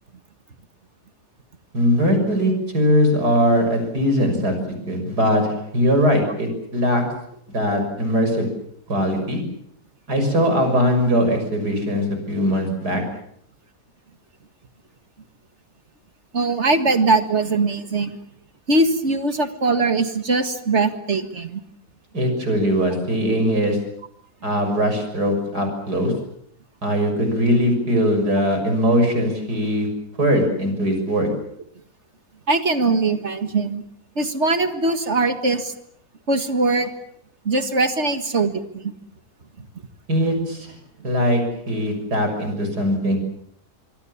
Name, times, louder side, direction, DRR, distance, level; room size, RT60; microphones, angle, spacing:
voice 1, 1.7-4.6 4.9-7.0 7.5-8.5 8.9-9.4 10.1-13.0 22.1-23.8 24.4-26.1 26.8-29.9 30.2-31.3 40.1-40.7 41.0-43.2, equal, 80° right, 6 dB, 6.9 m, -20 dB
voice 2, 16.3-18.2 18.7-21.6 32.5-33.8 34.2-35.7 36.3-36.9 37.5-38.9, right 3 dB, 45° right, 9 dB, 2.0 m, -21 dB
26.0 x 23.5 x 7.2 m, 0.69 s
omnidirectional pair, 1.7 m